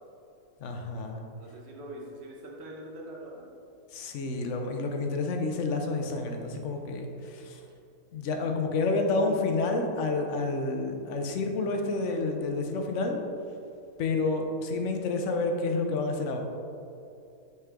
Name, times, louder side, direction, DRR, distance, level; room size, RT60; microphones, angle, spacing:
voice 1, 0.6-1.2 3.9-7.6 8.1-13.2 14.0-16.4, left 3 dB, 65° left, 3 dB, 0.9 m, -29 dB
voice 2, 1.4-3.4, right 1 dB, 50° right, -2 dB, 1.2 m, -43 dB
5.7 x 4.5 x 3.6 m, 2.6 s
omnidirectional pair, 1.6 m